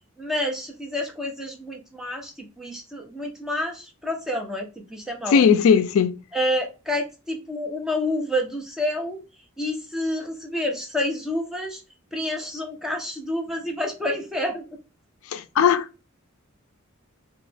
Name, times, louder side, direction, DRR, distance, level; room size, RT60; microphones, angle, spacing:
voice 1, 0.2-5.4 6.3-9.2 9.6-11.8 12.1-14.6, left 1 dB, ahead, 0.5 m, -28 dB
voice 2, 5.3-6.2 15.3-15.9, left 7 dB, 80° left, 0.3 m, -18 dB
3.0 x 2.2 x 3.2 m
head